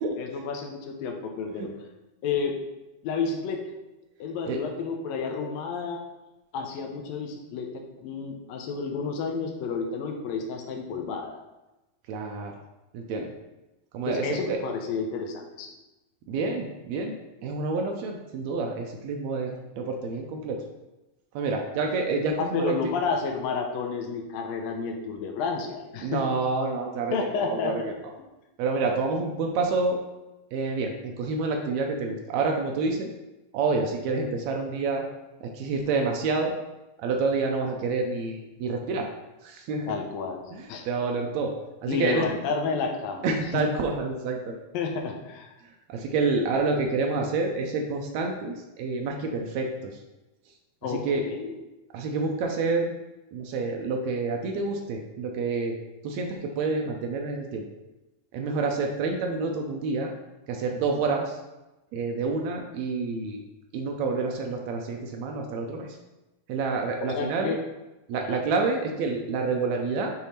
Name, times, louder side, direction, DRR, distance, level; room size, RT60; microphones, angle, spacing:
voice 1, 0.2-1.7 2.2-2.5 3.0-3.6 4.2-6.0 6.5-11.4 14.1-15.7 22.4-26.2 27.1-27.7 39.9-40.4 40.7-40.8 41.9-43.3 43.5-43.6 44.7-45.5 50.8-51.5 67.0-67.6 68.3-68.4, left 5 dB, 85° left, 2 dB, 1.5 m, -31 dB
voice 2, 12.1-12.6 12.9-13.3 13.9-14.6 16.3-17.1 17.4-20.6 21.3-22.9 26.0-27.8 28.6-30.0 30.5-33.1 33.5-35.0 35.4-36.5 37.0-39.1 39.4-40.0 40.5-41.5 41.8-42.3 43.2-44.6 45.9-50.0 50.8-51.2 51.9-52.9 53.3-55.7 56.0-57.6 58.3-60.1 60.5-61.4 61.9-63.4 63.7-65.9 66.5-67.5 68.1-70.1, right 3 dB, 85° right, 2 dB, 1.5 m, -28 dB
6.6 x 3.4 x 4.2 m, 1.0 s
omnidirectional pair, 3.8 m